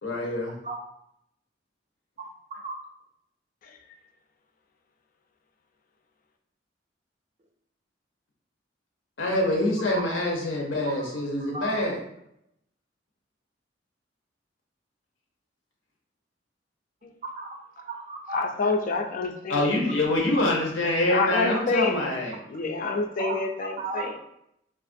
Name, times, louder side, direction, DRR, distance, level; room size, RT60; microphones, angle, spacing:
voice 1, 0.0-0.6 9.2-12.0 19.5-22.4, left 1 dB, 85° left, 0 dB, 0.7 m, -25 dB
voice 2, 17.2-17.6 17.9-18.5 22.8-24.2, right 3 dB, 40° right, 3 dB, 0.4 m, -35 dB
voice 3, 18.3-19.7 21.1-22.1 22.5-24.2, left 3 dB, 45° left, 4 dB, 0.4 m, -28 dB
2.8 x 2.4 x 2.5 m, 0.76 s
head